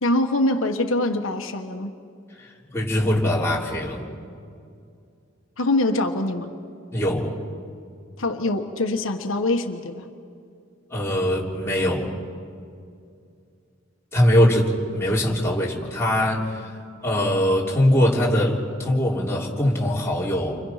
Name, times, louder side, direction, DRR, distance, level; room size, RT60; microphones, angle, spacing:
voice 1, 0.0-1.9 5.6-6.5 8.2-10.1, left 2 dB, 85° left, 4 dB, 1.4 m, -24 dB
voice 2, 2.7-4.1 6.9-7.4 10.9-12.1 14.1-16.5 17.0-20.6, left 1 dB, 15° left, -4 dB, 3.4 m, -22 dB
30.0 x 24.5 x 5.7 m, 2.4 s
head